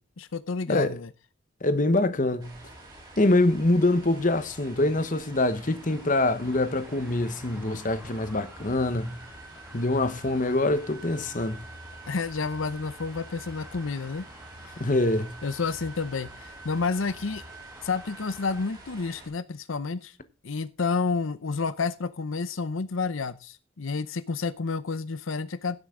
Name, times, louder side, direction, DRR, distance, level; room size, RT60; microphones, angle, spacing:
voice 1, 0.2-1.1 12.1-14.3 15.4-17.4 17.8-20.2 20.4-25.8, left 4 dB, 75° left, 0.7 m, -30 dB
voice 2, 1.6-2.7 3.2-9.2 9.7-11.6 14.8-15.4, left 2 dB, 40° left, 1.0 m, -25 dB
sound 1, 2.4-19.3, right 1 dB, 20° right, 6.5 m, -48 dB
sound 2, 5.0-18.7, right 2 dB, 5° right, 1.4 m, -49 dB
16.0 x 8.1 x 3.7 m
head